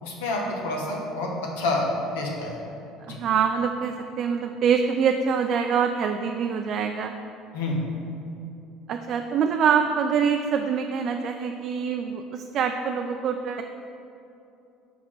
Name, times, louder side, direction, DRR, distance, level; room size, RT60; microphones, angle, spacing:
voice 1, 0.0-1.9 2.1-2.6 3.0-3.2 7.5-7.8, left 2 dB, 85° left, -1 dB, 1.2 m, -28 dB
voice 2, 3.1-7.1 8.9-13.6, right 7 dB, 55° right, 5 dB, 0.4 m, -25 dB
5.9 x 4.0 x 6.1 m, 2.7 s
hypercardioid pair, 75°, 0 cm